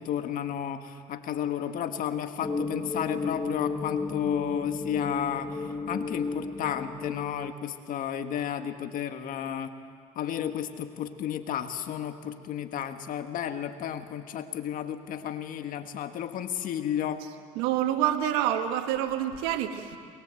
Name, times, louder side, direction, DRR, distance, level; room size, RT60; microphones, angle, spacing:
voice 1, 0.0-5.5 5.9-9.7 10.2-17.2, left 9 dB, 60° left, 7 dB, 1.8 m, -32 dB
sound 1, 2.4-7.5, left 3 dB, 25° left, 2.0 m, -33 dB
voice 2, 17.6-20.0, right 11 dB, 85° right, 6 dB, 1.8 m, -27 dB
23.0 x 22.5 x 7.8 m, 2.2 s
supercardioid pair, 85°, 16 cm